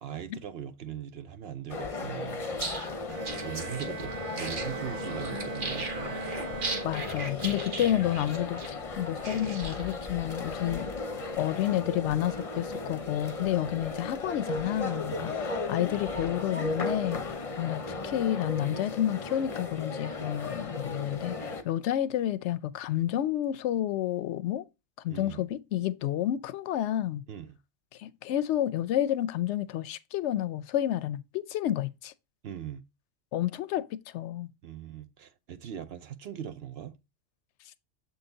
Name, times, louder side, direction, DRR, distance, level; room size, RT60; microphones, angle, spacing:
voice 1, 0.0-2.4 3.4-6.2 13.6-13.8 15.1-15.3 25.1-25.5 27.3-27.6 32.4-32.8 34.6-37.0, right 10 dB, 60° right, 0.8 m, -40 dB
sound 1, 1.7-21.6, left 3 dB, 35° left, 0.7 m, -36 dB
sound 2, 2.5-10.1, right 3 dB, 45° right, 1.1 m, -38 dB
Bowed string instrument, 3.1-7.5, right 4 dB, 85° right, 1.3 m, -40 dB
voice 2, 6.8-10.9 11.4-17.2 17.6-24.7 25.0-27.2 28.0-32.1 33.3-34.5, left 12 dB, 70° left, 0.8 m, -30 dB
7.0 x 4.0 x 3.9 m
omnidirectional pair, 1.3 m